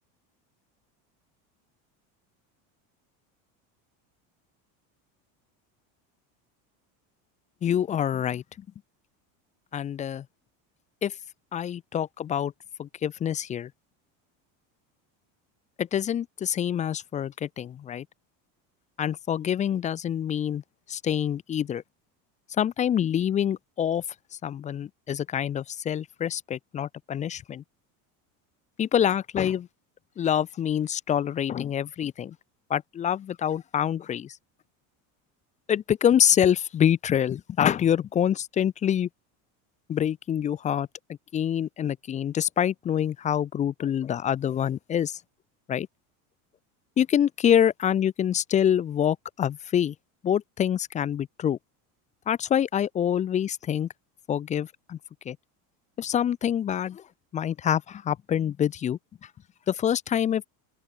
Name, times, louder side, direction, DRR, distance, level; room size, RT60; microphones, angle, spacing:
voice 1, 7.6-8.4 9.7-10.2 11.0-11.2 11.5-12.5 12.8-13.7 15.8-18.1 19.0-20.6 20.9-21.8 22.5-24.0 24.4-27.6 28.8-29.7 30.2-32.4 32.7-34.4 35.7-39.1 39.9-40.9 41.3-45.2 45.7-45.9 47.0-49.9 50.2-51.6 52.3-53.9 54.3-55.0 55.3-55.4 56.0-57.0 57.3-59.3 59.7-60.5, left 9 dB, 20° left, 0.5 m, -26 dB
open air
cardioid pair, 165°, 39 cm